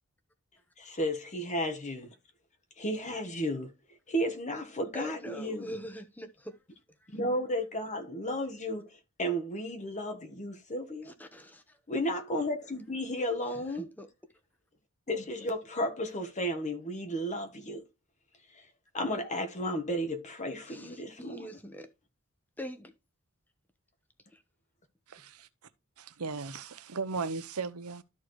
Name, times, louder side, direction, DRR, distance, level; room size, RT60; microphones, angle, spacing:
voice 1, 0.8-2.1 2.8-3.7 4.1-5.7 7.1-11.1 11.9-13.8 15.1-17.8 18.5-18.7 18.9-21.6, equal, 35° left, 1.3 m, -33 dB
voice 2, 4.9-6.6 11.0-11.6 13.8-14.1 20.7-21.9 22.6-22.9 24.3-24.4, equal, 10° left, 1.0 m, -43 dB
voice 3, 25.1-25.5 26.0-28.0, right 4 dB, 75° right, 0.8 m, -36 dB
13.0 x 4.4 x 3.1 m
head